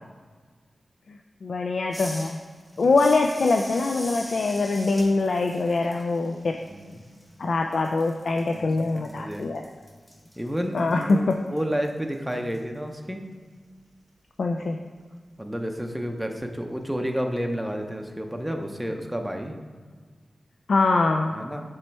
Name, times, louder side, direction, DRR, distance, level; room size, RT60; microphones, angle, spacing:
voice 1, 1.1-2.4 2.8-6.6 7.4-9.6 10.7-11.2 14.4-14.8 20.7-21.3, left 3 dB, 75° left, 3 dB, 0.3 m, -23 dB
sound 1, 1.9-7.4 7.7-12.6, equal, 15° left, 1.0 m, -43 dB
voice 2, 6.7-7.0 8.5-8.7 9.0-9.4 10.4-13.2 15.4-19.6 21.3-21.6, equal, 5° right, 4 dB, 0.6 m, -30 dB
7.5 x 3.1 x 4.5 m, 1.5 s
wide cardioid pair, 85°, 0 cm